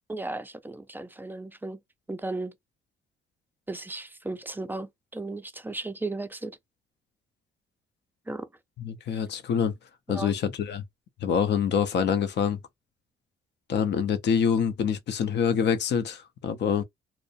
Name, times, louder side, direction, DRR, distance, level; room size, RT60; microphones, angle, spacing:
voice 1, 0.1-1.8 2.1-2.5 3.7-6.6 8.3-8.5 10.1-10.4, right 2 dB, 10° right, 0.3 m, -35 dB
voice 2, 8.8-9.7 10.1-10.8 11.2-12.6 13.7-16.8, left 7 dB, 60° left, 0.6 m, -26 dB
2.5 x 2.0 x 2.5 m
cardioid pair, 90°, 20 cm